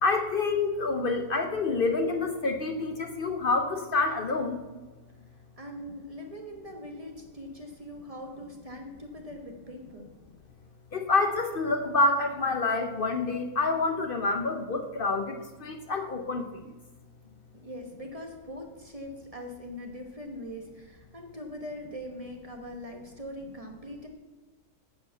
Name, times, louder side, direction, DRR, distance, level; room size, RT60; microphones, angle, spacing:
voice 1, 0.0-4.6 10.9-16.7, left 3 dB, 55° left, 5 dB, 0.6 m, -27 dB
voice 2, 5.6-10.1 17.5-24.1, equal, 25° right, 2 dB, 1.1 m, -42 dB
9.7 x 5.1 x 7.0 m, 1.2 s
omnidirectional pair, 1.6 m